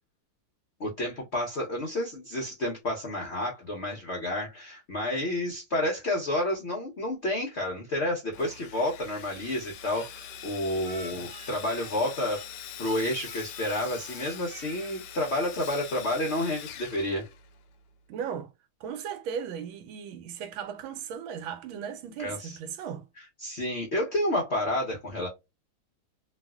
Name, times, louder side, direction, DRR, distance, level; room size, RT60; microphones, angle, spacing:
voice 1, 0.8-12.4 12.8-17.3 22.2-22.6 23.4-25.3, left 1 dB, 70° left, 0.6 m, -30 dB
Sawing, 8.3-17.8, left 8 dB, 85° left, 1.5 m, -43 dB
Speech, 9.9-12.6 12.8-13.8 14.1-14.9, right 2 dB, 35° right, 1.0 m, -49 dB
voice 2, 18.1-18.5 18.8-23.1, right 7 dB, 80° right, 1.4 m, -37 dB
3.2 x 2.4 x 2.3 m
omnidirectional pair, 2.3 m